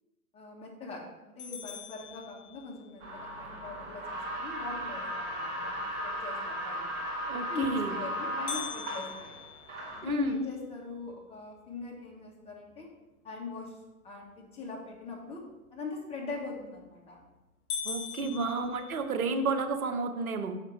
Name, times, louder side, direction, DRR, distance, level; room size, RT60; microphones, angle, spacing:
voice 1, 0.3-6.9 7.5-9.3 10.0-12.9 13.2-13.7 14.0-15.4 15.7-17.2 18.2-18.5 19.1-19.2, left 3 dB, 15° left, -2 dB, 1.3 m, -40 dB
sound 1, 1.4-3.0 8.5-10.6 11.1-11.2 11.7-11.8 12.5-12.8 16.4-16.8 17.2-17.3 17.7-19.4, left 7 dB, 40° left, 1.4 m, -41 dB
sound 2, 3.0-10.0, equal, 50° right, 2.5 m, -36 dB
voice 2, 7.3-7.9 10.0-10.4 17.8-20.6, right 4 dB, 70° right, 6 dB, 0.9 m, -32 dB
5.8 x 5.0 x 4.5 m, 1.1 s
figure-of-eight pair, 110°, 44 cm